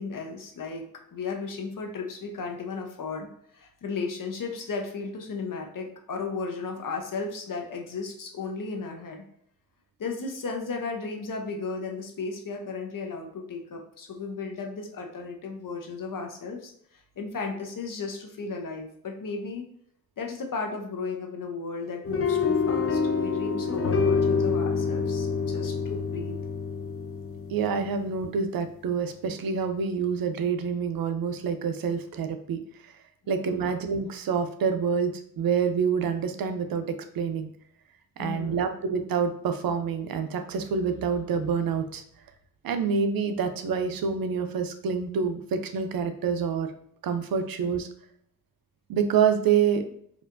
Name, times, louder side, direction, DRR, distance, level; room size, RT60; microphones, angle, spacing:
voice 1, 0.0-9.2 10.0-19.7 20.2-26.4 33.2-33.7 38.2-38.9, left 4 dB, 65° left, 2 dB, 0.8 m, -35 dB
sound 1, 22.0-28.3, left 5 dB, 40° left, 0.5 m, -27 dB
voice 2, 27.5-32.9 33.3-37.5 38.2-42.0 42.6-46.7 47.0-47.9 48.9-49.8, right 6 dB, 85° right, 7 dB, 0.5 m, -27 dB
4.4 x 2.4 x 2.5 m, 0.66 s
cardioid pair, 70°, 35 cm